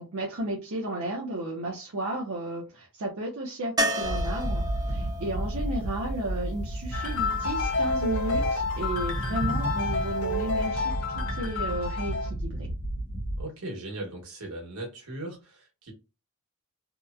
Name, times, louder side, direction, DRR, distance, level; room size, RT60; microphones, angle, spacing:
voice 1, 0.0-12.7, right 1 dB, 70° right, 0.6 m, -33 dB
sound 1, 3.8-7.7 10.3-10.4 10.7-10.8, equal, 20° right, 0.4 m, -33 dB
sound 2, 4.0-13.4, right 1 dB, 35° left, 1.1 m, -32 dB
sound 3, 6.9-12.3, left 3 dB, 75° left, 0.5 m, -30 dB
voice 2, 13.3-15.9, right 1 dB, 90° right, 1.1 m, -38 dB
2.8 x 2.1 x 2.3 m
head